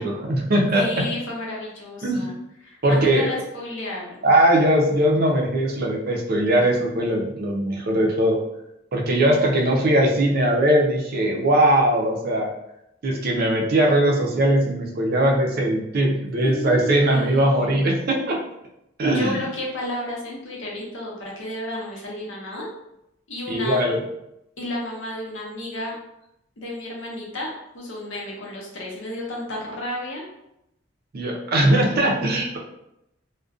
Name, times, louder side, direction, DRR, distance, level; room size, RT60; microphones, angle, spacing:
voice 1, 0.0-0.8 2.0-2.3 2.8-3.3 4.2-8.4 8.9-12.5 13.0-18.4 19.0-19.4 23.5-24.0 31.1-32.6, right 1 dB, 50° right, 0 dB, 0.5 m, -20 dB
voice 2, 0.8-2.3 2.6-4.2 9.6-10.0 16.4-17.8 19.1-22.7 23.3-23.8 24.6-25.9 26.6-30.2, left 1 dB, 75° left, -3 dB, 0.7 m, -32 dB
2.4 x 2.1 x 2.3 m, 0.82 s
head